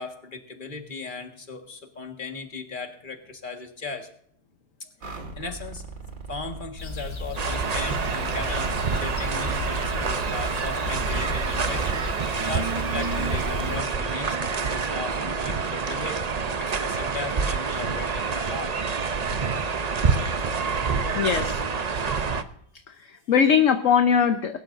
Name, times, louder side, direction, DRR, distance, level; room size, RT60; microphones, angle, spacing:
voice 1, 0.0-4.1 5.0-5.8 6.3-12.0 12.5-18.8, left 3 dB, 30° left, 4 dB, 1.8 m, -37 dB
sound 1, 5.0-6.7 7.3-8.6 8.9-12.1 13.0-13.8, right 3 dB, 50° right, 2.4 m, -39 dB
sound 2, 6.8-13.8, left 1 dB, 85° left, 3.4 m, -34 dB
sound 3, 7.4-22.4, right 5 dB, 70° right, 0.3 m, -27 dB
voice 2, 21.1-21.6 22.9-24.6, left 7 dB, 55° left, 7 dB, 1.2 m, -21 dB
22.0 x 12.0 x 2.6 m, 0.66 s
omnidirectional pair, 1.8 m